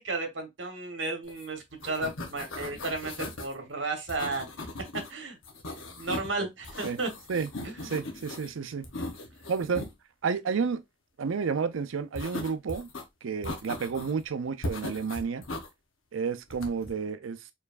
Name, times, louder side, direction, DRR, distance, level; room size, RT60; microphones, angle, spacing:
voice 1, 0.0-4.5 5.1-5.4 6.0-7.1 7.6-8.1 9.4-9.5, right 3 dB, 65° right, 1.2 m, -34 dB
sound 1, 1.3-1.5 1.7-3.5 4.1-5.1 5.4-6.3 6.6-8.5 8.8-9.9 12.2-13.0 13.4-14.2 14.6-15.7 16.5-16.9, left 2 dB, 85° left, 0.9 m, -38 dB
voice 2, 7.8-8.9 9.5-9.8 10.2-10.8 11.2-12.9 13.2-15.4 16.1-17.4, right 5 dB, 90° right, 0.5 m, -31 dB
4.5 x 3.1 x 2.4 m
head